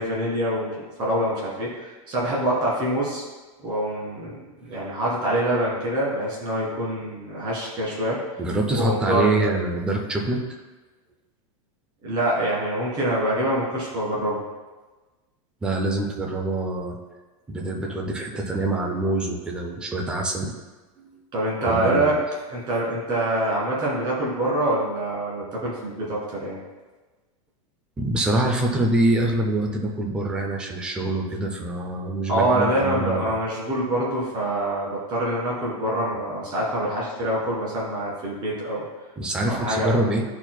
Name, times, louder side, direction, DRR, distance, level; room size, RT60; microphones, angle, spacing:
voice 1, 0.0-3.2 3.6-4.4 4.7-8.2 8.7-9.5 12.0-14.4 21.3-22.2 22.5-26.6 32.3-38.8 39.5-40.0, right 1 dB, 25° right, -5 dB, 1.8 m, -25 dB
voice 2, 8.4-10.4 15.6-17.0 17.5-20.5 21.0-21.1 21.7-22.2 28.0-33.3 39.2-40.2, right 1 dB, 5° right, 2 dB, 0.3 m, -25 dB
10.5 x 4.5 x 2.2 m, 1.2 s
supercardioid pair, 175°, 18 cm